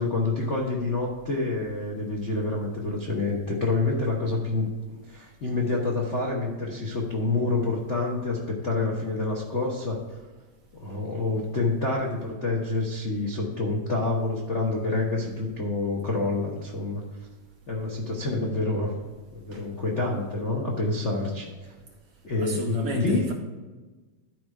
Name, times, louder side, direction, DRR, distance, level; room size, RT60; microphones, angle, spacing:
voice 1, 0.0-10.0 10.8-17.0 17.7-18.9 19.3-21.7 22.2-23.3, left 3 dB, 70° left, -2 dB, 0.6 m, -27 dB
voice 2, 22.4-23.3, right 4 dB, 70° right, 2 dB, 1.5 m, -32 dB
12.0 x 4.8 x 4.9 m, 1.2 s
omnidirectional pair, 3.4 m